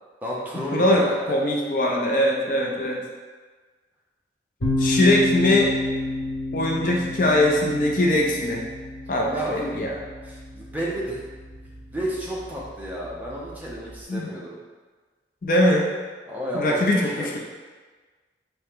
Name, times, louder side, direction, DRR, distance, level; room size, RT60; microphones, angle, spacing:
voice 1, 0.2-1.4 5.0-5.2 9.3-9.6 10.2-11.2 11.9-14.6 16.2-17.3, equal, 10° right, -6 dB, 0.7 m, -31 dB
voice 2, 0.7-3.0 4.8-5.7 6.5-8.6 9.1-10.0 14.1-14.2 15.4-15.9 16.5-17.4, left 1 dB, 50° left, -1 dB, 0.5 m, -21 dB
sound 1, 4.6-14.0, left 2 dB, 85° left, 1.0 m, -31 dB
4.3 x 2.9 x 3.6 m, 1.4 s
head